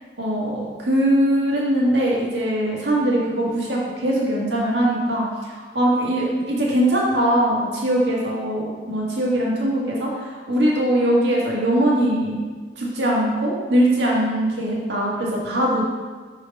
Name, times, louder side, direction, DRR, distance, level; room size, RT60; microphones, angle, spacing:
voice 1, 0.2-12.4 12.7-15.8, right 1 dB, 80° right, -4 dB, 1.7 m, -21 dB
5.4 x 4.9 x 5.3 m, 1.4 s
head